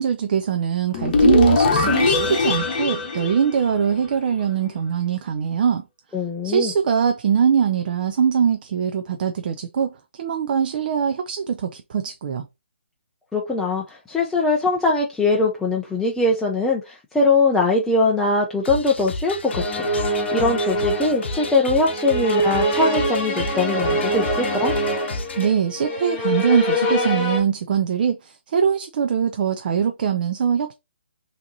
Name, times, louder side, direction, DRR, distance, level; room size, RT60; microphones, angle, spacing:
voice 1, 0.0-5.8 6.4-12.5 25.4-30.7, right 7 dB, 45° right, 0.4 m, -22 dB
sound 1, 0.9-4.2, left 3 dB, 40° left, 1.1 m, -20 dB
voice 2, 6.1-6.7 13.3-24.7, left 3 dB, 5° left, 0.5 m, -21 dB
sound 2, 18.6-25.5, left 2 dB, 65° left, 0.8 m, -32 dB
sound 3, 19.5-27.4, equal, 25° left, 1.6 m, -24 dB
5.7 x 2.8 x 2.7 m
figure-of-eight pair, 145°, 6 cm